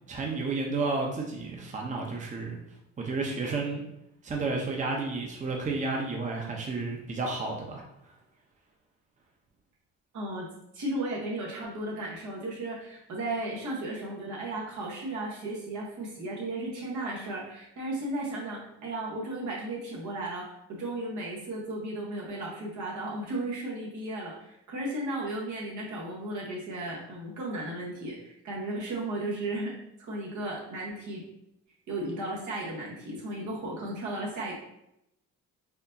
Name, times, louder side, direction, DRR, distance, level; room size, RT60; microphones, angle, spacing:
voice 1, 0.1-2.6 3.0-3.8 4.2-7.8, right 3 dB, 25° right, 0 dB, 0.7 m, -31 dB
voice 2, 10.1-10.5 10.7-29.7 30.0-31.2 31.9-34.5, right 1 dB, 75° right, -3 dB, 1.3 m, -35 dB
4.3 x 2.8 x 2.7 m, 0.82 s
cardioid pair, 90°, 30 cm